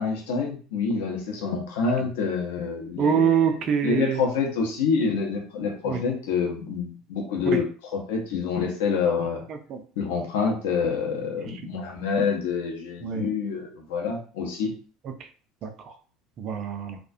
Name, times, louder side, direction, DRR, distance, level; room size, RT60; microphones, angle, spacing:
voice 1, 0.0-7.7 7.9-9.4 10.0-14.7, left 5 dB, 65° left, 1 dB, 0.6 m, -27 dB
voice 2, 3.0-4.2 5.9-6.0 7.4-7.6 9.5-9.8 13.0-13.2 15.6-15.9 16.4-17.0, right 7 dB, 45° right, 7 dB, 0.4 m, -25 dB
2.3 x 2.1 x 2.5 m, 0.40 s
figure-of-eight pair, 65°, 0 cm